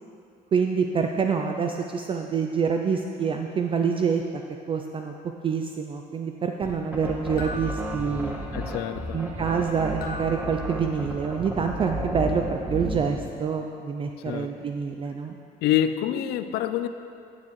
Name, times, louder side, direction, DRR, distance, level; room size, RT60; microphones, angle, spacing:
voice 1, 0.5-4.2 4.7-5.1 5.4-8.4 9.1-15.4, right 6 dB, 30° right, 4 dB, 0.4 m, -26 dB
sound 1, 6.6-13.2, equal, 10° right, 1.1 m, -33 dB
sound 2, 7.4-8.8 10.0-11.5, left 1 dB, 60° left, 0.9 m, -41 dB
voice 2, 8.5-9.2 14.3-14.5 15.6-16.9, left 11 dB, 80° left, 11 dB, 0.4 m, -26 dB
9.5 x 7.1 x 3.1 m, 2.5 s
cardioid pair, 110°, 17 cm